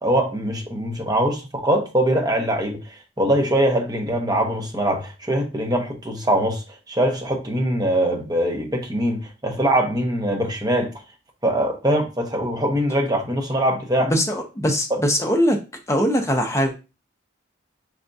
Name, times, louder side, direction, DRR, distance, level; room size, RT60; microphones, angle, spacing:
voice 1, 0.0-10.9 11.4-14.1 14.9-15.0, right 1 dB, 20° right, 0.8 m, -22 dB
voice 2, 14.0-15.6 15.9-16.7, equal, 15° left, 0.5 m, -21 dB
5.0 x 3.3 x 2.6 m
head